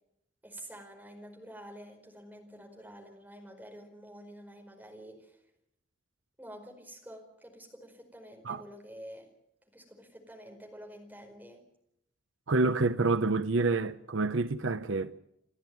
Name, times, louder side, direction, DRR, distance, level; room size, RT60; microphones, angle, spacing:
voice 1, 0.4-5.4 6.4-9.3 9.7-11.7, equal, 10° right, 4.9 m, -49 dB
voice 2, 12.5-15.2, right 3 dB, 75° right, 0.8 m, -28 dB
30.0 x 12.5 x 9.3 m
head